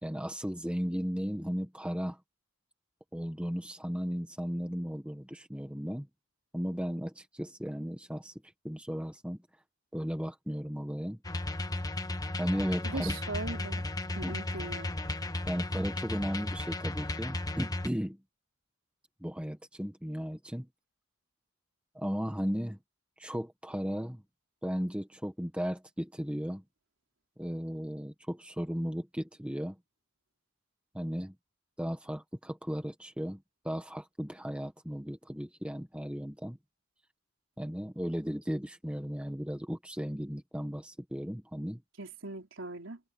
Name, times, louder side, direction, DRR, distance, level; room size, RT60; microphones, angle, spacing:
voice 1, 0.0-2.2 3.1-6.1 6.5-8.3 8.6-9.4 9.9-11.2 12.4-13.2 14.2-14.3 15.5-18.2 19.2-20.7 21.9-22.8 23.2-24.2 24.6-26.6 27.4-29.8 30.9-31.3 31.8-36.6 37.6-41.8, equal, 5° right, 1.5 m, -35 dB
sound 1, 11.2-17.9, left 2 dB, 20° left, 1.2 m, -35 dB
voice 2, 12.8-13.8 14.1-14.9 42.0-43.0, right 2 dB, 65° right, 4.3 m, -39 dB
head